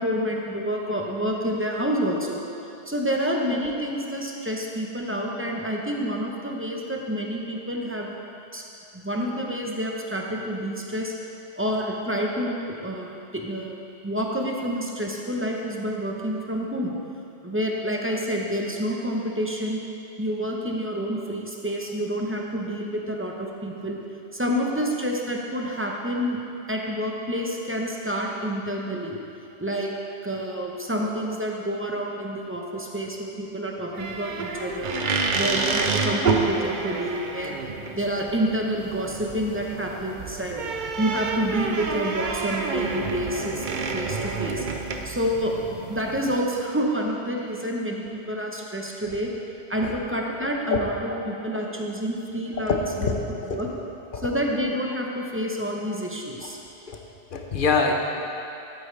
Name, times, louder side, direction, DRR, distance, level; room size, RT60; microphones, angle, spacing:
voice 1, 0.0-2.4 2.9-8.1 8.5-8.7 8.9-11.2 11.6-16.9 17.4-19.8 20.2-24.0 24.3-26.4 26.7-29.2 29.6-29.9 30.2-34.9 35.3-37.6 37.9-40.6 41.0-43.7 43.9-44.6 45.0-49.3 49.7-53.1 53.5-53.7 54.2-56.6, equal, 15° right, -1 dB, 0.7 m, -28 dB
sound 1, 33.9-46.4, right 4 dB, 50° right, 0.7 m, -29 dB
voice 2, 52.7-53.1 53.5-53.8 54.1-54.3 56.9-57.0 57.3-57.9, left 4 dB, 50° left, 2 dB, 0.9 m, -24 dB
12.0 x 8.5 x 3.3 m, 2.8 s
omnidirectional pair, 1.2 m